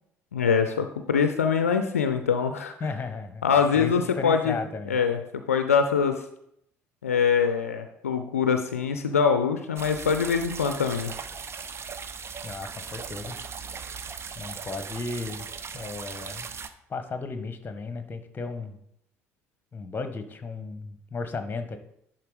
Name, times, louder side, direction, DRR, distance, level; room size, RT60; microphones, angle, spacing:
voice 1, 0.3-2.8 3.4-4.6 4.9-6.2 7.0-11.1, left 6 dB, 80° left, 7 dB, 0.5 m, -24 dB
voice 2, 2.8-3.5 3.7-5.0 12.4-13.4 14.4-15.5 15.7-16.5 16.9-18.8 19.7-21.8, left 4 dB, 25° left, 9 dB, 1.2 m, -35 dB
sound 1, 9.8-16.7, right 6 dB, 35° right, 0.7 m, -38 dB
11.0 x 4.2 x 5.0 m, 0.74 s
figure-of-eight pair, 55°, 8 cm